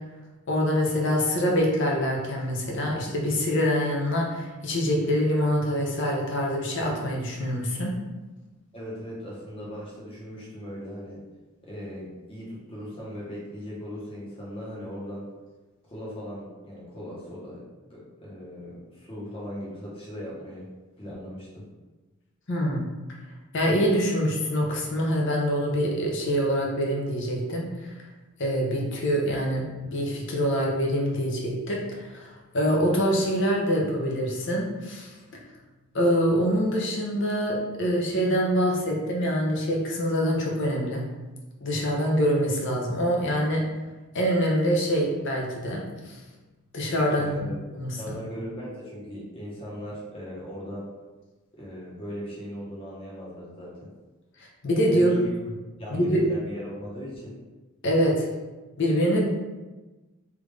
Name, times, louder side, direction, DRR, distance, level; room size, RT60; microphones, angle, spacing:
voice 1, 0.5-7.9 22.5-22.8 23.5-27.7 28.4-35.1 35.9-41.0 41.6-43.7 44.1-46.2 46.7-47.4 47.8-48.2 54.6-55.1 55.9-56.2 57.8-58.3 58.8-59.3, equal, 55° left, -1 dB, 0.7 m, -25 dB
voice 2, 8.7-11.2 11.6-15.3 15.8-20.7 21.0-21.6 47.1-47.6 48.0-50.9 51.5-53.9 54.9-55.3 55.8-57.4, equal, 25° left, -5 dB, 0.9 m, -38 dB
3.4 x 2.5 x 3.1 m, 1.2 s
head